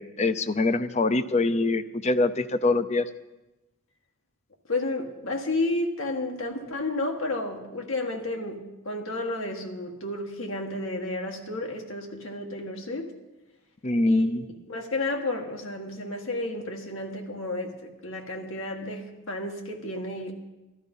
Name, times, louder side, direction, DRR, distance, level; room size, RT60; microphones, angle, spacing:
voice 1, 0.0-3.1 13.8-14.4, left 2 dB, 35° left, 13 dB, 0.6 m, -24 dB
voice 2, 4.7-13.1 14.0-14.2 14.7-20.3, left 2 dB, 80° left, 2 dB, 1.6 m, -32 dB
13.5 x 13.0 x 5.4 m, 1.0 s
head